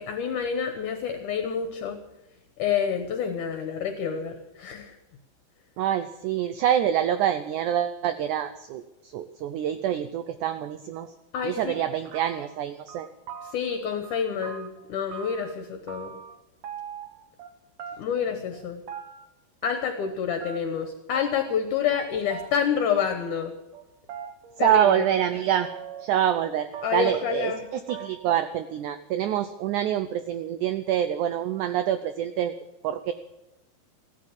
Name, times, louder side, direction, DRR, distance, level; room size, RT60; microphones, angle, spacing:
voice 1, 0.0-2.0 2.6-4.9 11.3-11.8 13.5-16.2 18.0-18.8 19.6-23.5 24.6-25.1 26.8-27.6, left 7 dB, 65° left, 7 dB, 2.3 m, -28 dB
voice 2, 5.8-11.1 11.4-13.1 24.6-25.7 26.0-32.5 32.8-33.1, right 10 dB, 85° right, 11 dB, 1.7 m, -26 dB
sound 1, 11.0-11.1 11.4-12.6 12.9-13.8 14.0-15.5 15.9-16.4 16.6-17.5 17.8-18.3 18.5-19.3 19.6-20.2 20.4-20.9 21.1-21.6 21.9-22.0 22.3-22.5 23.0-23.5 23.7-25.3 25.6-26.5 26.7-27.2 27.5-27.6 27.9-28.4, right 7 dB, 60° right, 2.1 m, -41 dB
15.0 x 13.0 x 7.3 m, 0.97 s
omnidirectional pair, 4.4 m